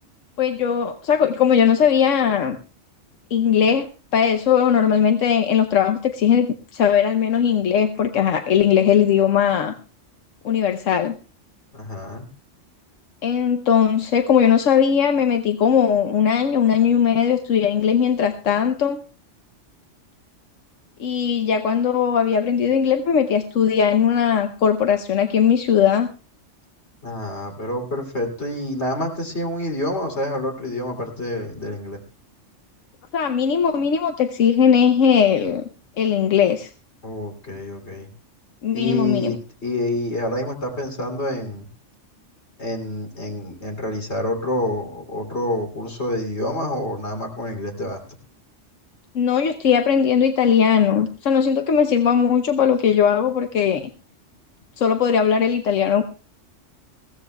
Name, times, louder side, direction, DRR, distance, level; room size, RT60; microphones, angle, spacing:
voice 1, 0.4-2.6 3.3-6.5 6.7-9.7 10.4-11.2 13.2-19.0 21.0-26.1 33.1-35.6 36.0-36.7 38.6-39.4 49.1-53.9 54.8-56.0, left 8 dB, 90° left, 6 dB, 1.2 m, -19 dB
voice 2, 11.7-12.3 27.0-32.0 37.0-38.1 38.7-41.7 42.6-48.2, left 1 dB, 60° left, 2 dB, 3.4 m, -27 dB
21.0 x 16.0 x 2.3 m, 0.35 s
omnidirectional pair, 1.3 m